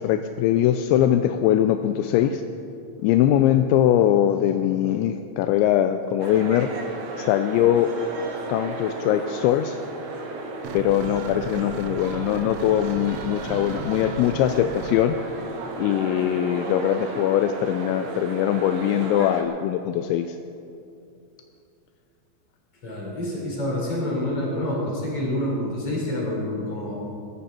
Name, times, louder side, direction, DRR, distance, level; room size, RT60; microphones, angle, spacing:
voice 1, 0.0-2.4 3.0-6.7 7.2-7.9 8.5-9.8 10.7-15.2 15.8-20.4, left 11 dB, 85° left, 8 dB, 2.6 m, -21 dB
sound 1, 6.2-19.4, right 2 dB, 60° right, 2.0 m, -34 dB
sound 2, 10.6-15.0, right 8 dB, 85° right, 2.3 m, -36 dB
voice 2, 22.8-26.9, left 1 dB, 30° left, -3 dB, 4.9 m, -27 dB
22.0 x 14.0 x 4.4 m, 2.6 s
omnidirectional pair, 5.7 m